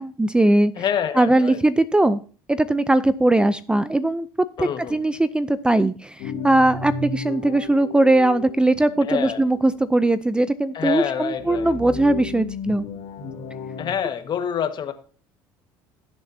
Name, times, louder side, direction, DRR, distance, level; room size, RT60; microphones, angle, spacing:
voice 1, 0.0-0.7 1.2-2.2 2.5-4.3 4.6-12.8, right 2 dB, 10° right, 15 dB, 0.5 m, -20 dB
voice 2, 0.7-1.6 4.6-5.0 9.0-9.4 10.7-11.7 13.8-14.9, left 8 dB, 45° left, 8 dB, 1.5 m, -26 dB
sound 1, 6.2-9.7 11.3-13.9, left 5 dB, 70° left, 2.7 m, -34 dB
17.5 x 7.2 x 2.7 m, 0.39 s
supercardioid pair, 95°, 10 cm